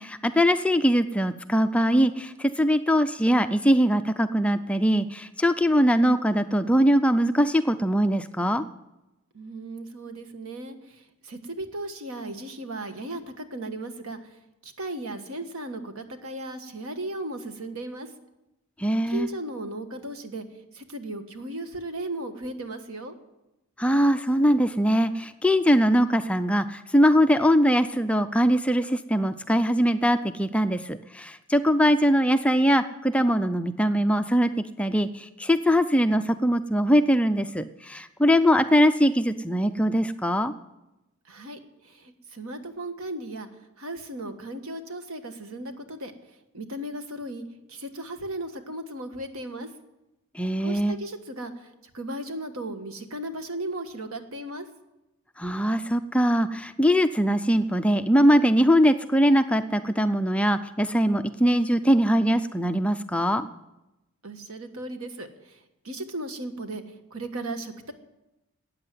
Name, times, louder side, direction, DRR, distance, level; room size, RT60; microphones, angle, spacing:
voice 1, 0.0-8.6 18.8-19.3 23.8-34.5 34.8-40.5 50.3-51.0 55.4-63.5, equal, 5° left, 9 dB, 0.4 m, -22 dB
voice 2, 9.3-14.2 14.6-18.1 19.1-20.4 20.7-23.1 41.3-43.5 43.8-46.1 46.5-49.7 50.6-54.7 64.2-65.6 65.8-66.8 67.1-67.9, right 1 dB, 80° right, 7 dB, 1.5 m, -36 dB
13.5 x 8.9 x 9.3 m, 0.96 s
head